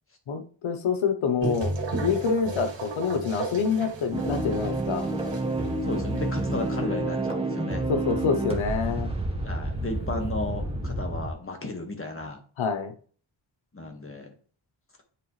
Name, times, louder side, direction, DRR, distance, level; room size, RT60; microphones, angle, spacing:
voice 1, 0.3-1.7 2.0-5.1 7.9-9.1 12.6-12.9, left 5 dB, 80° left, 7 dB, 1.0 m, -26 dB
sound 1, 1.4-6.8, right 2 dB, 65° right, 2.0 m, -35 dB
sound 2, 4.1-11.3, right 2 dB, 10° right, 1.4 m, -29 dB
voice 2, 5.8-7.8 9.4-12.4 13.7-14.3, left 2 dB, 25° left, 3 dB, 1.7 m, -34 dB
9.7 x 4.0 x 3.2 m, 0.43 s
cardioid pair, 85°, 46 cm